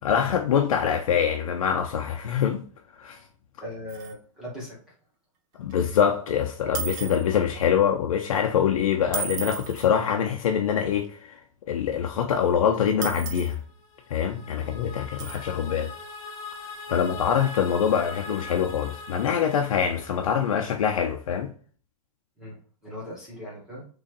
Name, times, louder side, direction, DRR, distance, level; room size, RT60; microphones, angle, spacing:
voice 1, 0.0-2.6 3.0-3.2 5.6-11.4 11.7-13.6 14.1-15.9 16.9-21.5, left 8 dB, 90° left, 0.6 m, -24 dB
voice 2, 3.6-4.8 16.9-17.0 22.4-23.9, left 1 dB, 5° right, 1.2 m, -39 dB
sound 1, 3.9-4.1 5.7-5.8 6.7-7.2 9.1-9.9 13.0-13.5 15.2-15.4, right 7 dB, 20° right, 0.5 m, -33 dB
sound 2, 13.7-20.8, left 3 dB, 25° left, 0.7 m, -41 dB
3.9 x 3.1 x 2.5 m
supercardioid pair, 165°, 17 cm